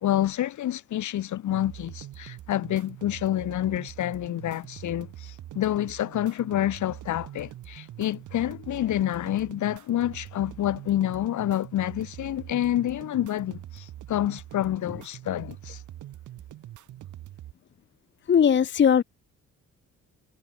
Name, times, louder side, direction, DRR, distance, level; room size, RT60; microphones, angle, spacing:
voice 1, 0.0-15.8, left 12 dB, 75° left, 2.2 m, -28 dB
sound 1, 1.5-17.5, right 13 dB, 80° right, 4.7 m, -43 dB
voice 2, 18.3-19.0, left 8 dB, 40° left, 0.9 m, -19 dB
cardioid pair, 90°, 30 cm